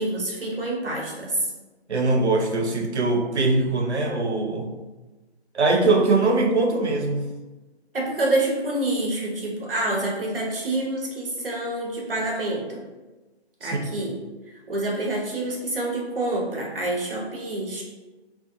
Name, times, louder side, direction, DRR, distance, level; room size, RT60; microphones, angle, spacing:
voice 1, 0.0-1.5 7.9-12.8 13.6-14.1 14.7-17.8, right 2 dB, 55° right, -2 dB, 0.8 m, -27 dB
voice 2, 1.9-4.7 5.5-7.3 13.6-13.9, right 3 dB, 85° right, 3 dB, 0.6 m, -22 dB
2.5 x 2.2 x 2.5 m, 1.2 s
figure-of-eight pair, 150°, 33 cm